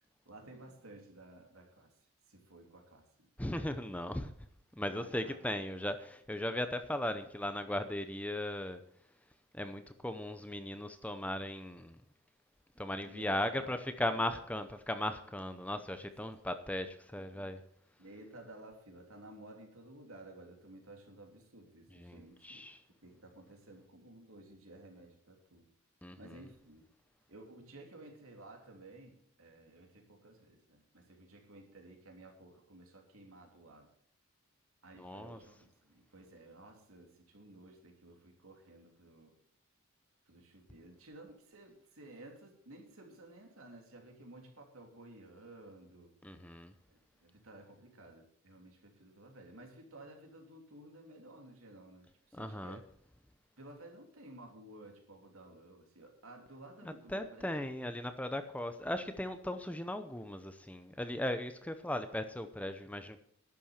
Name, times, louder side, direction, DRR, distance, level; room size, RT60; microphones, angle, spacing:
voice 1, 0.2-1.9 2.3-3.3 4.8-5.4 13.1-13.9 14.1-14.4 18.0-22.6 23.0-25.7 26.2-26.8 27.3-33.9 34.8-39.3 40.3-46.1 46.9-52.9 53.6-57.6, right 2 dB, 70° right, 2 dB, 3.2 m, -54 dB
voice 2, 3.4-4.3 4.7-8.8 9.5-12.0 12.8-17.6 21.9-22.8 26.0-26.2 35.0-35.4 46.2-46.7 52.3-52.8 56.8-63.2, left 1 dB, 5° left, 9 dB, 0.7 m, -37 dB
11.5 x 8.5 x 7.3 m, 0.69 s
head